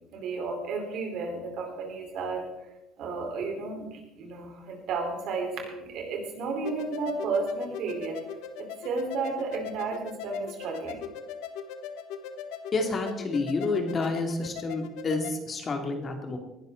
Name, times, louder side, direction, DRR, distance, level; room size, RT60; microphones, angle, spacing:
voice 1, 0.1-2.5 3.0-8.2 8.6-11.0, right 3 dB, 65° right, 2 dB, 4.3 m, -32 dB
sound 1, 6.6-15.4, left 7 dB, 80° left, 1.2 m, -40 dB
voice 2, 12.7-16.4, left 3 dB, 35° left, 4 dB, 2.7 m, -29 dB
19.0 x 11.5 x 4.0 m, 0.94 s
supercardioid pair, 95°, 0 cm